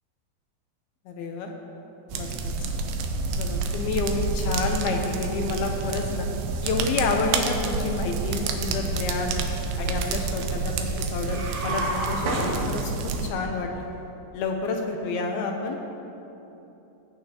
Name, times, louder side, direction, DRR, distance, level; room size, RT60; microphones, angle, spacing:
voice 1, 1.1-1.5 2.1-2.5 3.4-6.3 6.6-9.4 9.8-13.9 14.3-15.8, left 3 dB, 80° left, 2 dB, 2.4 m, -29 dB
sound 1, 2.1-13.3, right 4 dB, 80° right, 2.5 m, -29 dB
sound 2, 11.2-13.2, right 1 dB, 65° right, 3.1 m, -29 dB
17.5 x 8.5 x 2.9 m, 2.9 s
omnidirectional pair, 4.8 m